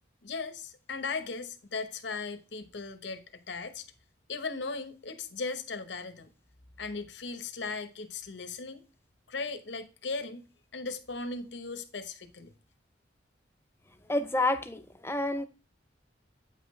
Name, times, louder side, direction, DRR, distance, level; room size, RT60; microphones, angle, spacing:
voice 1, 0.2-3.9 4.3-6.3 6.8-8.8 9.3-10.4 10.7-12.5, left 4 dB, 70° left, 1.0 m, -37 dB
voice 2, 14.1-15.5, left 2 dB, 15° left, 0.6 m, -29 dB
9.0 x 5.6 x 3.2 m
head